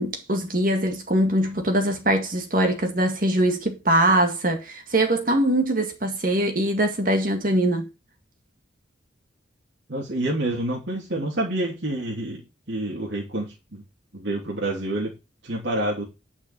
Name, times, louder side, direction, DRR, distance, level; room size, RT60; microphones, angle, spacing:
voice 1, 0.0-7.9, right 1 dB, 45° right, 1.9 m, -22 dB
voice 2, 9.9-12.4 12.7-13.8 14.1-15.1 15.4-16.0, right 1 dB, 70° right, 3.0 m, -28 dB
10.5 x 5.8 x 5.3 m
head